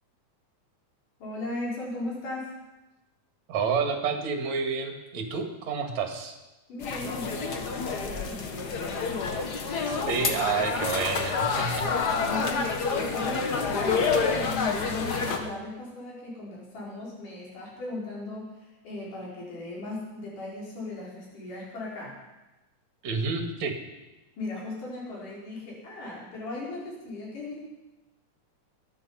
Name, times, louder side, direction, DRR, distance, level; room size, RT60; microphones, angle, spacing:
voice 1, 1.2-2.5 6.7-9.4 12.2-22.2 24.4-27.6, left 2 dB, 85° left, -4 dB, 6.4 m, -37 dB
voice 2, 3.5-6.4 9.9-11.9 23.0-23.8, right 5 dB, 60° right, 4 dB, 3.1 m, -29 dB
sound 1, 6.8-15.4, left 4 dB, 50° left, 1.2 m, -28 dB
22.0 x 11.5 x 5.7 m, 1.1 s
omnidirectional pair, 3.6 m